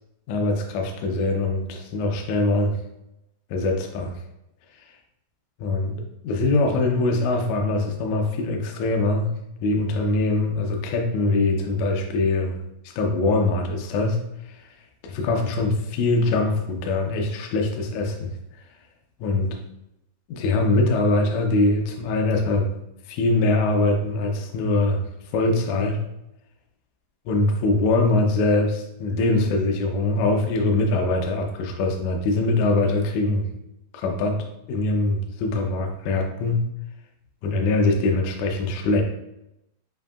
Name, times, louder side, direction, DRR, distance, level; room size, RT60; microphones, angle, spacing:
voice 1, 0.3-2.8 3.5-4.1 5.6-9.3 9.6-12.6 12.9-14.2 15.0-18.3 19.2-19.5 20.3-22.7 23.1-25.0 25.3-26.0 27.3-33.5 33.9-34.4 34.7-36.7 37.4-39.0, left 2 dB, 90° left, 2 dB, 1.6 m, -23 dB
7.1 x 2.7 x 2.4 m, 0.86 s
omnidirectional pair, 4.3 m